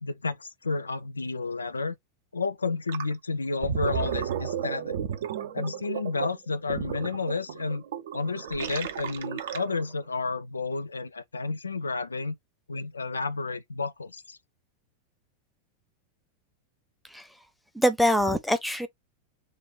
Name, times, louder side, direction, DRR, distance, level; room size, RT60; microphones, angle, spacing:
voice 1, 0.0-2.0 2.3-4.9 5.5-7.8 8.1-12.4 12.7-14.4, left 3 dB, 75° left, 0.4 m, -31 dB
Gurgling, 2.9-3.1 3.5-10.0, right 9 dB, 60° right, 0.5 m, -33 dB
voice 2, 17.7-18.9, equal, ahead, 0.6 m, -24 dB
3.3 x 2.2 x 3.7 m
figure-of-eight pair, 90°, 0 cm